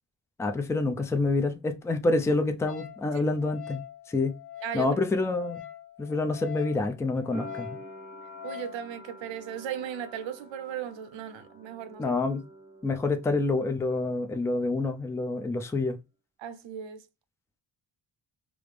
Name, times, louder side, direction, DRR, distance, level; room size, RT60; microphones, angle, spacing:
voice 1, 0.4-3.8 4.1-4.4 4.7-5.6 6.0-7.7 12.0-12.4 12.8-16.0, left 3 dB, 5° left, 0.3 m, -27 dB
Wind instrument woodwind instrument, 2.7-8.8, left 11 dB, 55° left, 0.7 m, -44 dB
sound 1, 7.3-14.1 14.4-15.3, right 2 dB, 15° right, 0.9 m, -48 dB
voice 2, 8.4-12.2 16.4-17.0, right 9 dB, 75° right, 0.6 m, -37 dB
4.9 x 2.0 x 3.2 m
cardioid pair, 85°, 46 cm